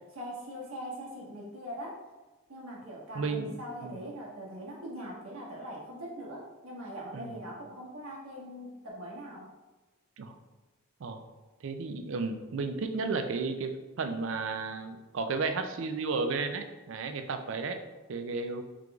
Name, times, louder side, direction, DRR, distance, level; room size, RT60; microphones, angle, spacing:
voice 1, 0.1-1.9 2.5-9.4, equal, 80° right, -5 dB, 1.3 m, -42 dB
voice 2, 3.1-3.5 3.8-3.9 7.1-7.4 10.2-10.4 11.0-11.2 11.6-17.8 18.1-18.6, right 4 dB, 60° right, 7 dB, 0.4 m, -33 dB
4.7 x 3.7 x 2.3 m, 1.2 s
head